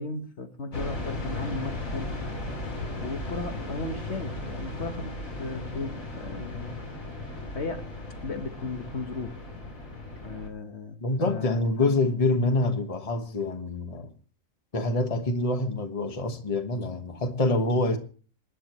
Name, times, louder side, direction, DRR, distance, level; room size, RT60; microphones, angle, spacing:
voice 1, 0.0-2.1 3.0-7.1 7.5-7.9 8.2-9.4 10.2-11.9, left 3 dB, 55° left, 1.4 m, -36 dB
sound 1, 0.7-10.5, left 1 dB, 80° left, 3.6 m, -36 dB
voice 2, 11.0-14.1 14.7-18.0, left 2 dB, 25° left, 1.3 m, -26 dB
27.5 x 10.0 x 3.0 m
omnidirectional pair, 1.4 m